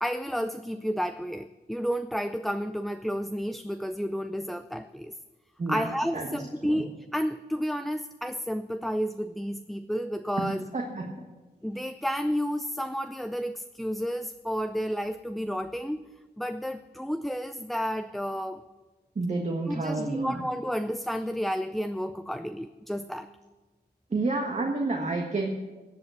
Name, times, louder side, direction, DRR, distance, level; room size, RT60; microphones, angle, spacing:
voice 1, 0.0-5.1 5.7-10.7 11.6-16.0 16.4-18.6 19.7-23.3, equal, ahead, 9 dB, 0.4 m, -31 dB
voice 2, 5.6-6.8 10.4-11.1 19.1-20.4 24.1-25.5, right 3 dB, 40° right, 1 dB, 1.5 m, -30 dB
14.5 x 8.2 x 6.3 m, 1.2 s
cardioid pair, 80°, 18 cm